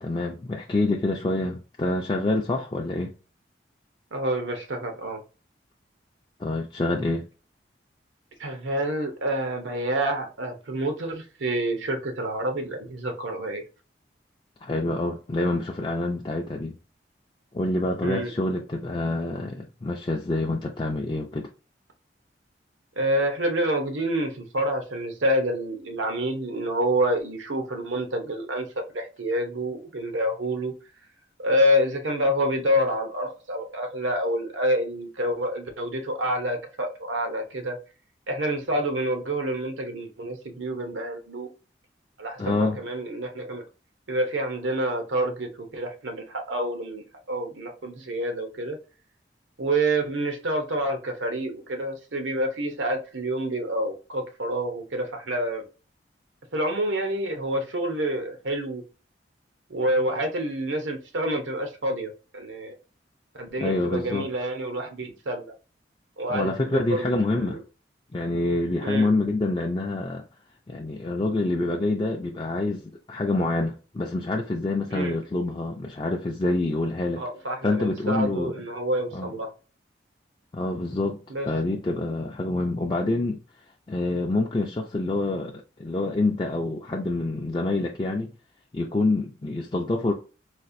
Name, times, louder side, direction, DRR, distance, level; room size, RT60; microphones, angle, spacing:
voice 1, 0.0-3.1 6.4-7.3 14.6-16.8 17.5-21.5 42.4-42.8 63.6-64.3 66.3-67.6 68.1-70.2 70.7-72.8 73.1-77.2 77.6-78.5 79.1-79.3 80.5-83.4 83.9-88.3 88.7-90.1, left 2 dB, 25° left, 0.3 m, -26 dB
voice 2, 4.1-5.2 8.4-13.6 18.0-18.3 23.0-30.7 31.4-37.8 38.3-41.5 42.2-43.6 44.1-48.8 49.6-55.6 56.5-58.8 59.7-62.7 63.3-65.5 66.2-67.6 68.8-69.1 74.9-75.2 77.2-79.5 81.3-81.5, right 1 dB, 90° right, 0.8 m, -28 dB
4.1 x 2.4 x 2.5 m
head